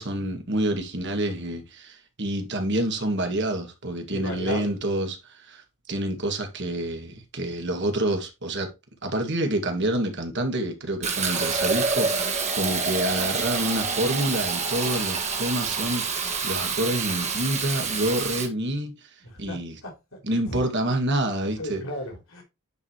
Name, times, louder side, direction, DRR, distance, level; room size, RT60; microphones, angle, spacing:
voice 1, 0.0-8.7 9.0-19.1 19.4-19.8 20.2-21.8, right 1 dB, 55° right, 2.0 m, -28 dB
voice 2, 4.1-4.7 19.2-19.9 20.5-20.7 21.6-22.4, left 1 dB, 65° left, 3.7 m, -35 dB
Fill (with liquid), 11.0-18.5, right 5 dB, 30° right, 1.8 m, -27 dB
10.5 x 5.0 x 3.0 m
head